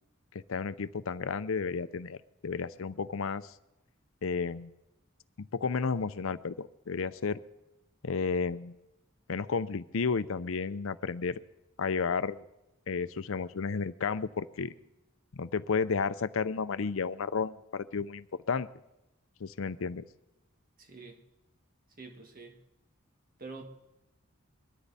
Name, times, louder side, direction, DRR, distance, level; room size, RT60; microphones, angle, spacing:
voice 1, 0.3-2.2 2.4-3.5 4.2-4.7 5.4-7.4 8.0-8.8 9.3-11.4 11.8-12.4 12.9-14.7 15.3-18.7 19.4-20.0, left 5 dB, 70° left, 15 dB, 0.6 m, -32 dB
voice 2, 20.8-21.2 22.0-22.6 23.4-23.6, right 3 dB, 45° right, 4 dB, 1.8 m, -46 dB
21.5 x 13.5 x 4.1 m, 0.94 s
head